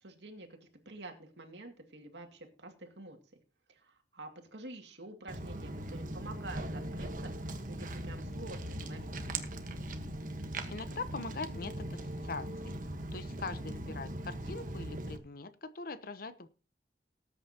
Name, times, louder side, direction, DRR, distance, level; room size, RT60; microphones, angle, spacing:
voice 1, 0.0-3.2 3.7-9.1, right 2 dB, 80° right, 4 dB, 2.3 m, -48 dB
Walk footsteps, 5.3-15.2, right 1 dB, 50° right, 1.3 m, -40 dB
voice 2, 10.7-12.7 13.1-16.5, left 3 dB, 55° left, 14 dB, 0.8 m, -42 dB
19.0 x 8.7 x 2.9 m, 0.33 s
head